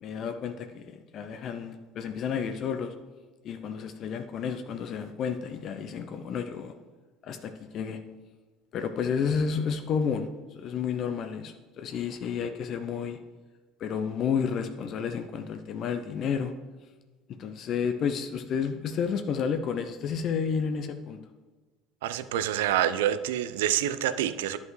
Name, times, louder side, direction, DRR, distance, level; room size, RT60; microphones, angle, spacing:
voice 1, 0.0-2.9 3.4-6.7 7.2-8.0 8.7-13.2 13.8-16.5 17.4-21.2, left 6 dB, 50° left, 7 dB, 0.5 m, -31 dB
voice 2, 22.0-24.6, right 11 dB, 70° right, 13 dB, 0.4 m, -27 dB
11.0 x 5.2 x 3.1 m, 1.3 s
hypercardioid pair, 70°, 0 cm